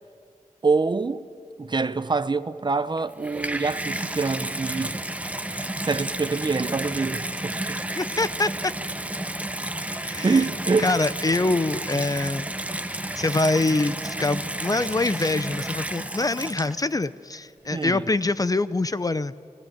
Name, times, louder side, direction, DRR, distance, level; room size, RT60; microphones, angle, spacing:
voice 1, 0.6-1.2 1.6-5.0 5.5-7.8 10.2-10.9 17.7-18.0, right 4 dB, 35° right, 0.9 m, -25 dB
Water tap faucet / Bathtub (filling or washing), 3.0-17.0 17.8-17.9, right 1 dB, 10° right, 1.1 m, -31 dB
voice 2, 8.0-8.7 9.9-10.5 10.8-12.5 13.2-19.3, left 2 dB, 30° left, 0.7 m, -25 dB
28.5 x 21.5 x 9.3 m
wide cardioid pair, 80°, 13 cm